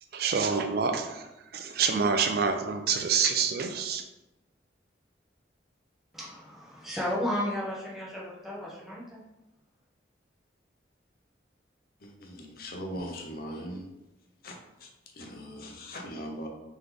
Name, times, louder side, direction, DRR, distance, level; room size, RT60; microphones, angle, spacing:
voice 1, 0.1-1.3 1.5-4.0, right 5 dB, 55° right, 6 dB, 0.3 m, -27 dB
voice 2, 6.1-9.2, left 1 dB, ahead, -7 dB, 0.9 m, -33 dB
voice 3, 12.0-13.9 14.4-16.5, equal, 50° left, 2 dB, 0.6 m, -40 dB
3.9 x 3.0 x 3.4 m, 0.98 s
head